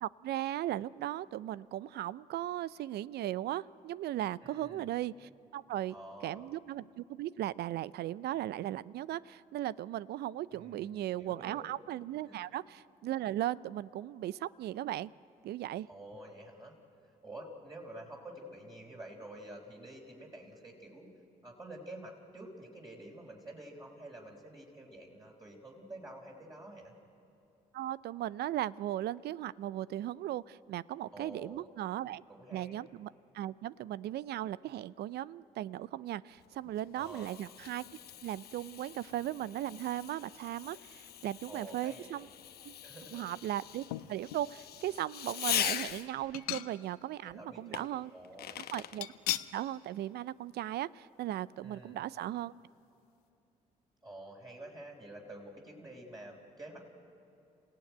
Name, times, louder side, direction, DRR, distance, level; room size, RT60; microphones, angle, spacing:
voice 1, 0.0-5.9 6.2-15.1 15.4-15.9 27.7-32.2 32.5-37.9 38.2-42.3 42.6-42.7 43.1-48.1 48.7-49.1 49.5-52.5, right 13 dB, 60° right, 20 dB, 0.5 m, -37 dB
voice 2, 4.4-4.9 5.9-6.5 10.5-11.7 12.3-12.4 15.9-16.8 17.2-21.1 21.4-26.9 31.1-31.6 32.3-32.8 37.0-37.3 41.5-42.1 42.8-43.2 47.2-47.8 48.1-48.6 51.6-52.0 54.0-56.9, right 1 dB, 20° right, -3 dB, 4.2 m, -49 dB
Fireworks, 36.4-46.3 47.7-49.0, left 10 dB, 60° left, 0.9 m, -41 dB
sound 1, 43.9-44.5 45.0-45.1 46.3-47.1 47.4-47.5 49.0-49.6 50.0-50.2 50.5-50.6, left 16 dB, 90° left, 0.5 m, -38 dB
27.5 x 16.0 x 9.3 m, 2.8 s
hypercardioid pair, 55°, 19 cm